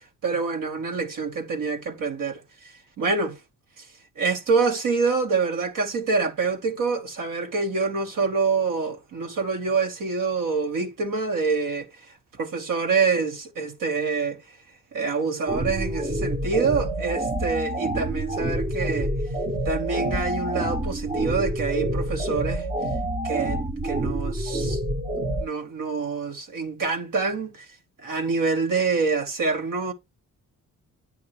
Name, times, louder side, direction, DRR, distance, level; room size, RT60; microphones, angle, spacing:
voice 1, 0.2-2.4 3.0-3.4 4.2-11.9 12.4-14.4 14.9-19.1 19.6-22.6 23.2-24.8 25.4-27.6 28.0-29.9, right 4 dB, 75° right, 1.5 m, -26 dB
sound 1, 15.5-25.4, right 1 dB, 20° right, 0.8 m, -27 dB
8.9 x 5.6 x 3.1 m
cardioid pair, 110°, 33 cm